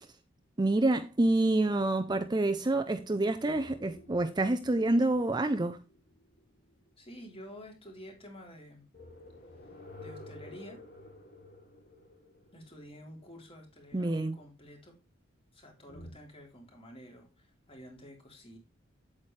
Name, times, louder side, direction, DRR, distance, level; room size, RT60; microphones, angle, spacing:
voice 1, 0.6-5.8 13.9-14.4, right 2 dB, 20° right, 0.5 m, -27 dB
sound 1, 3.4-6.9 8.9-13.6 15.9-16.1, left 1 dB, 50° left, 3.0 m, -51 dB
voice 2, 7.0-8.9 10.0-10.8 12.5-14.9 15.5-18.6, equal, 30° left, 3.5 m, -50 dB
8.7 x 8.5 x 3.2 m
head